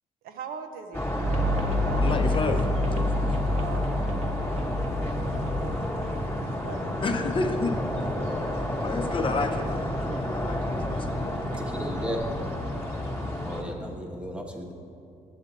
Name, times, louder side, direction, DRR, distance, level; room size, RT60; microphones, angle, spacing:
voice 1, 0.2-2.0 3.5-3.8 5.2-5.8 6.0-6.4 6.6-6.9, right 7 dB, 80° right, 6 dB, 0.6 m, -41 dB
sound 1, 0.9-13.6, left 1 dB, 15° left, 1.2 m, -30 dB
sound 2, 1.2-6.4, left 1 dB, 45° right, 0.9 m, -28 dB
voice 2, 1.9-2.6 2.9-3.3 7.0-7.7 8.4-11.5, left 3 dB, 35° left, 5 dB, 0.6 m, -31 dB
voice 3, 11.6-12.3 13.4-14.7, equal, 5° right, 2 dB, 0.9 m, -35 dB
8.0 x 6.9 x 4.0 m, 2.5 s
cardioid pair, 75°, 15 cm